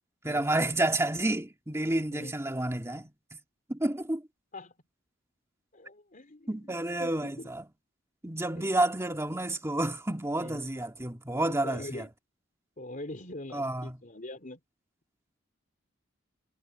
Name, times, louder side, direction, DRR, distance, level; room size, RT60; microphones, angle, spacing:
voice 1, 0.2-3.1 3.7-4.2 6.5-7.7 8.2-12.1 13.5-14.0, right 1 dB, 15° right, 1.7 m, -30 dB
voice 2, 5.7-7.5 8.6-8.7 10.4-10.6 11.4-12.1 12.8-14.6, left 1 dB, 45° left, 3.8 m, -43 dB
head